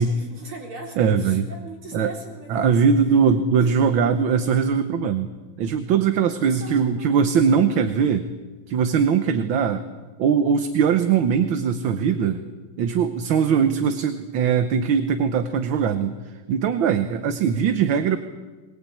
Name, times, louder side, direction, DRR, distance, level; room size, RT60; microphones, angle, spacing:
voice 1, 0.0-2.9 3.6-4.2 6.4-7.3 12.2-12.3 17.5-18.1, right 4 dB, 90° right, 0 dB, 4.7 m, -39 dB
voice 2, 1.0-1.4 1.9-2.1 2.5-5.3 5.6-8.2 8.7-9.8 10.2-12.4 12.8-16.1 16.5-18.2, right 6 dB, 70° right, 9 dB, 1.7 m, -20 dB
22.0 x 21.5 x 8.6 m, 1.3 s
omnidirectional pair, 2.3 m